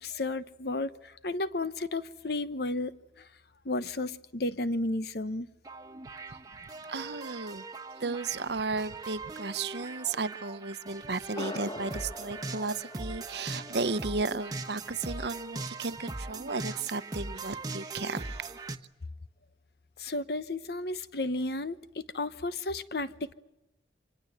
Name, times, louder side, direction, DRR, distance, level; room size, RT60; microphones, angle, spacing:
voice 1, 0.0-3.3 3.6-5.5 20.0-23.3, left 2 dB, 55° left, 1.0 m, -33 dB
sound 1, 5.6-18.8, right 3 dB, 20° right, 1.1 m, -41 dB
voice 2, 6.9-7.6 8.0-18.6, right 3 dB, 65° right, 0.9 m, -34 dB
sound 2, 11.3-16.1, left 1 dB, 20° left, 1.0 m, -44 dB
25.5 x 21.0 x 8.0 m
head